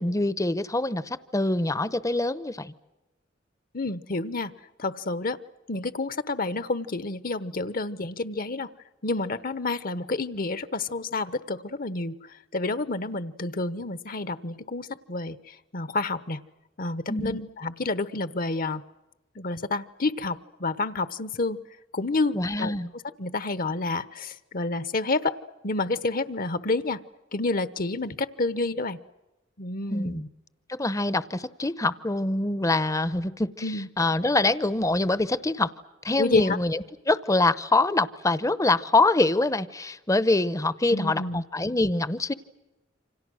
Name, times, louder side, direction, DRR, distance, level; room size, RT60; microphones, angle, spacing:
voice 1, 0.0-2.7 17.1-17.4 22.3-22.9 29.9-30.3 30.7-35.7 36.0-42.3, left 2 dB, 20° left, 15 dB, 0.8 m, -25 dB
voice 2, 3.7-4.5 4.8-5.4 5.7-8.7 9.0-12.1 12.5-16.4 16.8-18.8 19.3-21.6 21.9-22.7 23.2-25.4 25.6-27.0 27.3-29.0 29.6-30.3 33.6-33.9 36.2-36.6 40.9-41.4, left 3 dB, 50° left, 14 dB, 1.1 m, -29 dB
29.0 x 26.0 x 6.4 m, 1.0 s
head